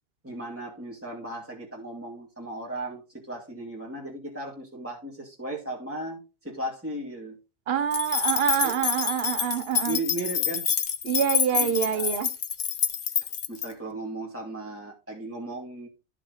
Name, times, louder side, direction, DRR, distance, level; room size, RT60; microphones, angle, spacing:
voice 1, 0.2-7.4 8.6-8.8 9.9-10.7 11.5-12.1 13.5-15.9, right 1 dB, 10° right, 2.5 m, -36 dB
voice 2, 7.7-10.0 11.0-12.3, right 8 dB, 60° right, 1.2 m, -26 dB
sound 1, 7.9-13.7, left 7 dB, 65° left, 1.2 m, -27 dB
14.0 x 6.1 x 4.0 m
omnidirectional pair, 1.1 m